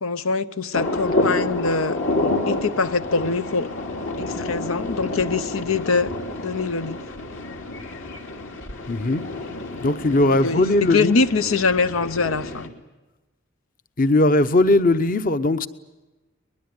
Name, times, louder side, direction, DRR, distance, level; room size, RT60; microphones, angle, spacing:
voice 1, 0.0-2.0 2.5-3.7 4.2-6.1 6.4-7.0 10.3-12.7, left 4 dB, 90° left, 0.8 m, -23 dB
sound 1, 0.7-12.7, left 2 dB, 70° left, 2.8 m, -29 dB
voice 2, 8.9-9.3 9.8-11.2 14.0-15.7, left 2 dB, 45° left, 0.9 m, -19 dB
23.5 x 21.0 x 9.7 m
head